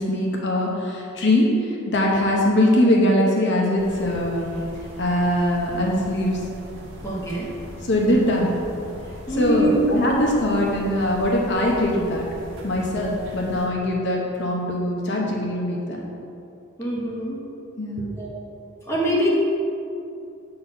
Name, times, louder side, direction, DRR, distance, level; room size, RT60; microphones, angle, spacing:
voice 1, 0.0-4.5 5.0-6.4 7.8-8.5 9.3-12.3 12.6-16.0 17.8-18.0, left 1 dB, 55° left, -2 dB, 0.9 m, -21 dB
sound 1, 3.8-13.7, equal, 70° right, 1.3 m, -40 dB
voice 2, 7.0-7.5 9.3-9.9 16.8-17.4 18.2-18.3 18.9-19.3, equal, 15° left, -5 dB, 1.2 m, -24 dB
7.7 x 4.0 x 5.6 m, 2.6 s
head